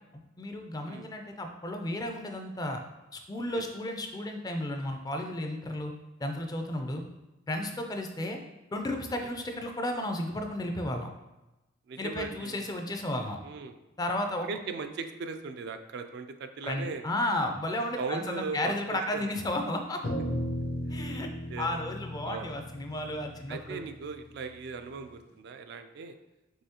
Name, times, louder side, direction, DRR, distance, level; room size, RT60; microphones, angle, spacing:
voice 1, 0.4-2.8 3.1-5.9 6.2-7.0 7.5-8.4 8.7-11.1 12.0-13.4 14.0-14.5 16.6-20.0 20.9-21.3 21.6-23.8, left 1 dB, 20° left, 4 dB, 0.4 m, -33 dB
voice 2, 11.9-12.7 13.4-13.8 14.4-17.0 18.0-19.3 21.0-21.2 21.5-21.7 22.2-22.5 23.5-26.1, right 4 dB, 60° right, 7 dB, 0.3 m, -38 dB
sound 1, 20.0-24.6, equal, 55° left, 0.7 m, -36 dB
5.5 x 3.1 x 2.9 m, 1.0 s
head